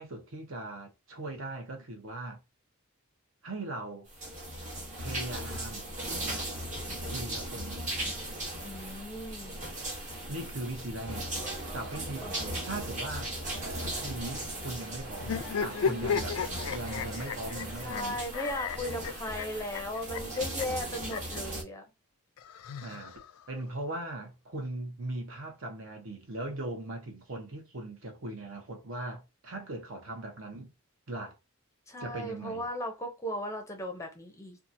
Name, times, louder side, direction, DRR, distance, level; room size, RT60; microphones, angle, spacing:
voice 1, 0.0-2.4 3.4-4.1 5.0-5.9 7.1-7.9 10.3-11.3 11.7-13.3 13.8-16.4 16.7-18.2 22.8-23.2 23.5-30.7 31.1-31.4 32.0-32.7, right 2 dB, 65° right, 0.8 m, -39 dB
sound 1, 4.1-21.6, right 1 dB, 35° right, 1.0 m, -38 dB
voice 2, 8.6-9.5 12.2-12.7 15.8-16.2 17.8-21.8 31.9-34.6, left 1 dB, 15° left, 0.5 m, -37 dB
sound 2, 11.3-18.1, right 4 dB, 90° right, 1.0 m, -46 dB
sound 3, 15.2-21.4 22.4-23.5, left 6 dB, 75° left, 0.3 m, -34 dB
2.8 x 2.4 x 2.5 m
head